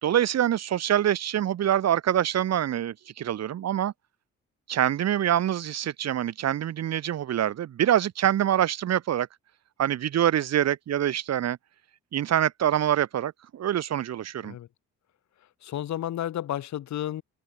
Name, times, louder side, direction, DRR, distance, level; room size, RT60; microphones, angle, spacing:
voice 1, 0.0-3.9 4.7-9.3 9.8-11.6 12.1-14.5, right 11 dB, 60° right, 1.2 m, -25 dB
voice 2, 15.6-17.2, left 12 dB, 65° left, 1.6 m, -32 dB
open air
cardioid pair, 90°, 30 cm